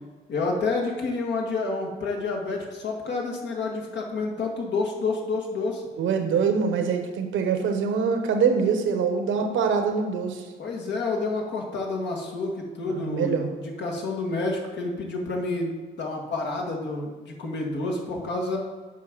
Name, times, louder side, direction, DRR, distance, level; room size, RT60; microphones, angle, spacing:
voice 1, 0.3-5.8 10.6-18.6, left 3 dB, 65° left, 0 dB, 1.8 m, -29 dB
voice 2, 6.0-10.4 12.9-13.5, right 6 dB, 80° right, 5 dB, 1.1 m, -24 dB
7.5 x 5.2 x 6.1 m, 1.3 s
cardioid pair, 90°, 20 cm